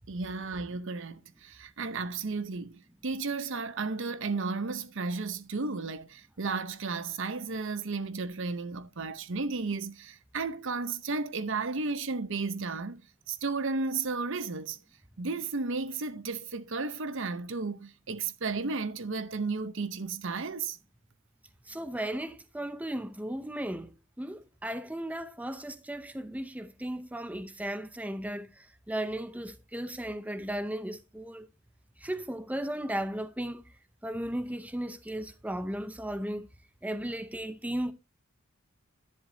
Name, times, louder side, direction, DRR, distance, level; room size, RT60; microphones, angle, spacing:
voice 1, 0.1-13.0 13.3-14.8 15.2-20.8, right 4 dB, 65° right, 0.8 m, -33 dB
voice 2, 21.7-31.5 32.0-33.7 34.0-36.5 36.8-37.9, right 1 dB, 5° right, 0.7 m, -36 dB
10.5 x 10.5 x 2.7 m
head